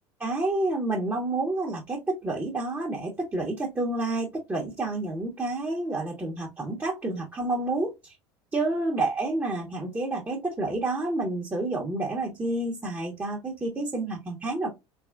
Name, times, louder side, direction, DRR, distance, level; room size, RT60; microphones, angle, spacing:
voice 1, 0.2-8.2 8.5-14.7, right 2 dB, 15° right, 0.9 m, -29 dB
3.3 x 2.9 x 2.4 m
hypercardioid pair, 75°, 14 cm